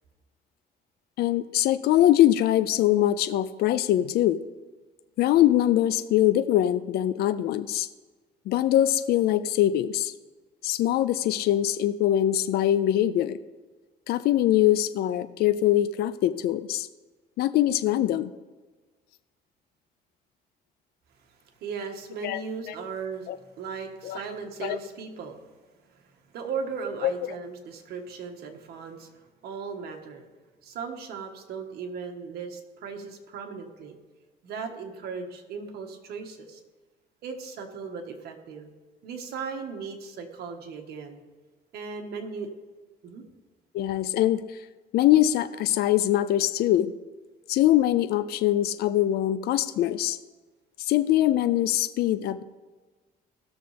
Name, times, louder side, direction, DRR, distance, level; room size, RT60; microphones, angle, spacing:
voice 1, 1.2-4.4 5.2-7.9 8.5-10.1 10.6-13.4 14.1-16.9 17.4-18.3 22.2-22.4 23.3-23.4 24.0-24.2 24.6-24.8 27.0-27.1 43.7-44.6 44.9-46.9 47.5-50.2 50.8-52.4, left 13 dB, 65° left, 11 dB, 0.5 m, -23 dB
voice 2, 21.6-23.3 23.6-25.4 25.9-26.0 26.3-30.2 30.6-34.0 34.4-36.6 37.2-38.7 39.0-41.2 41.7-42.5 43.0-43.2, right 5 dB, 70° right, 3 dB, 1.6 m, -37 dB
17.0 x 6.6 x 3.4 m, 1.3 s
cardioid pair, 110°, 17 cm